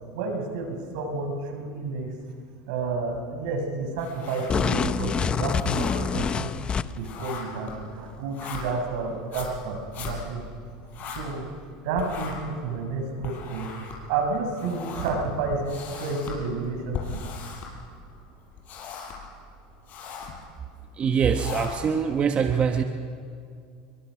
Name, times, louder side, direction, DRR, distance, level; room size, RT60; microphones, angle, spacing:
voice 1, 0.1-2.1 2.7-6.5 7.0-10.4 11.1-11.5 11.8-13.7 14.1-17.2, right 4 dB, 75° right, 3 dB, 6.4 m, -30 dB
sound 1, 4.0-5.0 5.3-11.7 11.9-18.2 18.5-19.3 19.7-20.4 21.0-22.0, left 5 dB, 45° left, 6.0 m, -39 dB
sound 2, 4.5-7.2, left 6 dB, 25° left, 0.8 m, -26 dB
voice 2, 21.0-22.8, right 6 dB, 30° right, 5 dB, 1.3 m, -23 dB
29.0 x 23.0 x 6.4 m, 2.2 s
supercardioid pair, 125°, 4 cm